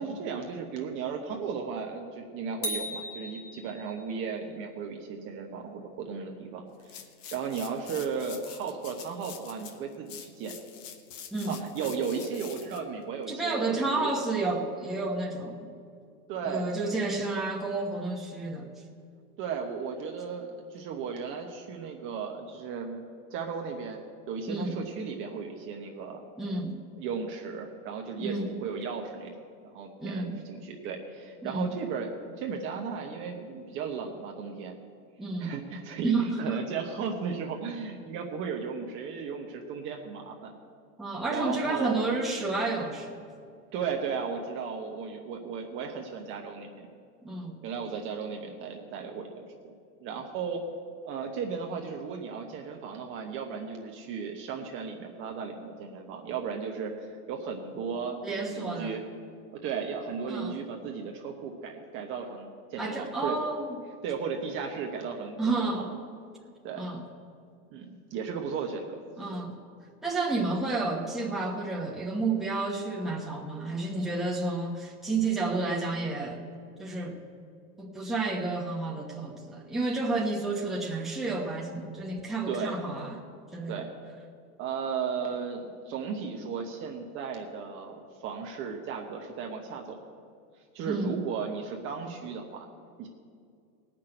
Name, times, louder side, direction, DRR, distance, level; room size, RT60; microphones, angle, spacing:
voice 1, 0.0-7.0 7.3-10.5 11.5-14.1 16.3-17.1 19.4-23.0 23.3-24.0 24.3-26.2 26.9-29.3 29.6-34.8 35.4-40.5 41.3-42.1 43.7-46.9 47.6-49.7 50.0-50.6 51.0-59.0 59.5-63.4 64.0-66.0 66.6-66.8 67.7-69.0 82.5-82.9 83.7-83.9 84.6-89.9 90.7-92.7 93.0-93.1, right 6 dB, 25° right, 1 dB, 0.9 m, -35 dB
sound 1, 2.6-4.2, left 1 dB, 30° left, 2.0 m, -36 dB
sound 2, 6.8-13.8, left 8 dB, 55° left, 1.3 m, -46 dB
voice 2, 13.3-15.7 16.4-18.7 24.5-24.8 26.4-26.8 28.2-28.6 30.0-30.4 31.4-31.7 35.2-35.5 36.0-36.6 41.0-43.2 47.2-47.6 58.2-59.0 60.3-60.5 62.8-63.8 65.4-65.9 66.7-67.0 69.2-69.6 70.0-76.4 76.8-77.3 77.8-83.2 83.5-83.8 90.9-91.2, right 3 dB, ahead, -3 dB, 1.1 m, -31 dB
17.5 x 6.1 x 8.9 m, 2.3 s
supercardioid pair, 155°, 45 cm